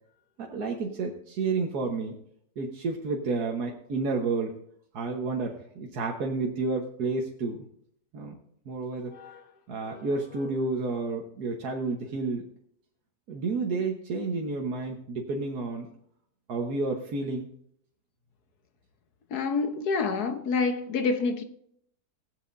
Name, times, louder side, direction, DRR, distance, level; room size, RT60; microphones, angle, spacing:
voice 1, 0.4-2.2 2.6-4.5 4.9-7.6 8.1-8.3 8.7-9.1 9.7-12.5 13.3-15.9 16.5-17.5, right 3 dB, 85° right, 1.7 m, -30 dB
voice 2, 9.1-9.4 9.8-10.1 19.3-21.4, left 4 dB, 90° left, 1.6 m, -28 dB
19.5 x 7.9 x 2.6 m
omnidirectional pair, 1.6 m